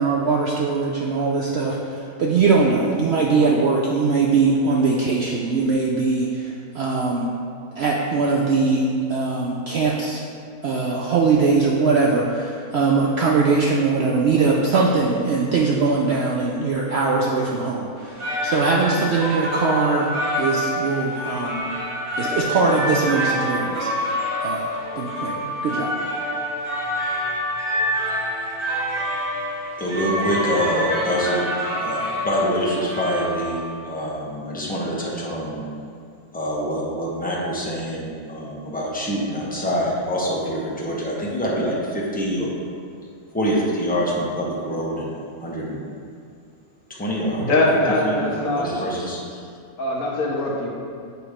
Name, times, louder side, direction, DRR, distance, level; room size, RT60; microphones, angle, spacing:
voice 1, 0.0-7.3 7.8-10.2 10.6-20.1 20.4-21.8 22.2-24.2 24.4-24.7 25.0-25.9, right 4 dB, 65° right, -2 dB, 0.6 m, -21 dB
sound 1, 18.0-33.9, equal, 50° right, 1.4 m, -27 dB
voice 2, 29.8-31.4 31.8-35.7 36.3-42.6 43.3-45.9 46.9-47.6 48.0-49.4, equal, 5° left, -5 dB, 0.8 m, -25 dB
voice 3, 47.4-48.7 49.8-50.7, left 1 dB, 65° left, -3 dB, 1.4 m, -21 dB
7.9 x 3.2 x 4.9 m, 2.3 s
omnidirectional pair, 1.6 m